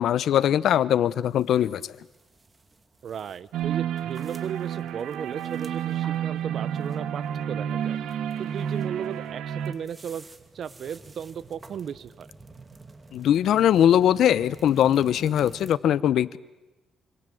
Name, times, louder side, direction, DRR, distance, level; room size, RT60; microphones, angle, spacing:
voice 1, 0.0-1.9 13.1-16.4, left 10 dB, 75° left, 18 dB, 0.9 m, -21 dB
sound 1, 1.0-15.8, right 3 dB, 25° right, 2.4 m, -51 dB
voice 2, 3.0-8.0 8.4-10.2 10.5-12.3, right 8 dB, 60° right, 18 dB, 1.1 m, -35 dB
sound 2, 3.5-9.7, right 9 dB, 80° right, 2.0 m, -30 dB
27.0 x 26.0 x 7.9 m, 1.1 s
cardioid pair, 90°, 0 cm